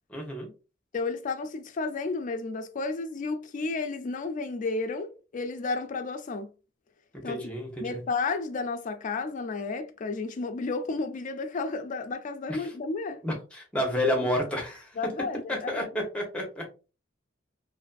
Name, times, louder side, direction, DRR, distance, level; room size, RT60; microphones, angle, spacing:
voice 1, 0.1-0.5 7.2-8.0 12.5-12.7 13.2-15.1 15.5-16.7, left 1 dB, 5° left, 0.7 m, -30 dB
voice 2, 0.9-6.5 7.2-7.4 7.8-13.2 15.0-15.9, left 3 dB, 40° left, 0.3 m, -32 dB
2.5 x 2.5 x 2.3 m
head